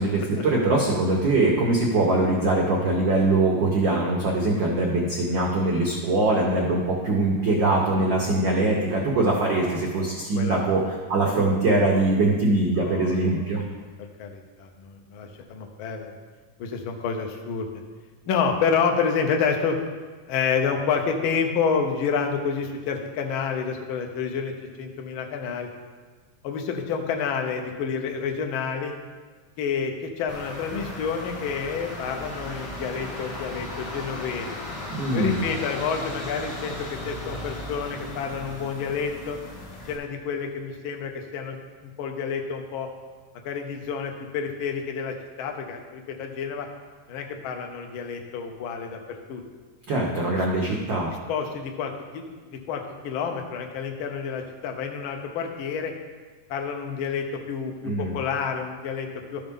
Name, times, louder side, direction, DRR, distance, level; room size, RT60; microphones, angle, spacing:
voice 1, 0.0-13.6 34.9-35.4 49.9-51.1 57.8-58.1, right 2 dB, 75° right, -2 dB, 1.0 m, -22 dB
voice 2, 9.4-10.8 12.8-13.2 14.0-16.2 16.6-17.7 18.3-19.8 20.3-25.7 26.4-28.9 29.6-34.6 35.1-39.4 39.9-42.9 43.4-46.7 47.1-49.4 51.3-55.9 56.5-59.4, left 6 dB, 75° left, 3 dB, 1.2 m, -29 dB
sound 1, 30.3-39.9, left 1 dB, 45° left, 1.7 m, -36 dB
13.0 x 5.7 x 3.6 m, 1.4 s
omnidirectional pair, 3.4 m